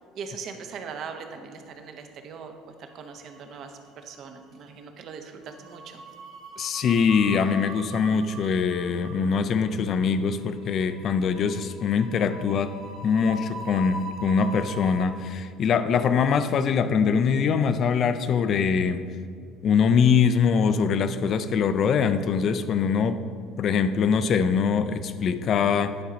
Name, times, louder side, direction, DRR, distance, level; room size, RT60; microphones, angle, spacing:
voice 1, 0.1-6.0, right 5 dB, 50° right, 6 dB, 0.8 m, -40 dB
sound 1, 3.0-3.8 4.0-4.3 5.5-15.0, right 2 dB, 65° right, 1.5 m, -42 dB
voice 2, 6.6-12.7 13.0-19.0 19.6-23.2 23.6-26.0, left 6 dB, 40° left, 11 dB, 0.4 m, -23 dB
10.0 x 4.0 x 5.0 m, 2.2 s
cardioid pair, 140°, 0 cm